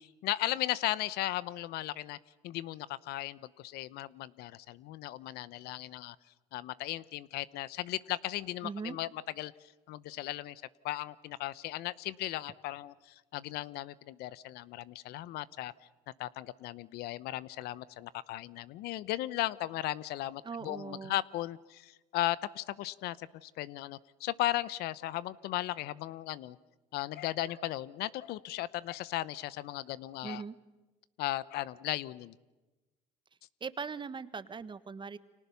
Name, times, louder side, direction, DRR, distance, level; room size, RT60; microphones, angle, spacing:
voice 1, 0.0-2.2 2.4-6.2 6.5-15.7 16.2-26.6 26.9-30.4 31.2-32.3, left 15 dB, 70° left, 19 dB, 0.8 m, -36 dB
voice 2, 8.6-9.0 20.4-21.2 30.2-30.5 33.6-35.2, right 5 dB, 30° right, 14 dB, 1.4 m, -40 dB
29.5 x 25.5 x 7.0 m, 1.1 s
supercardioid pair, 85°, 17 cm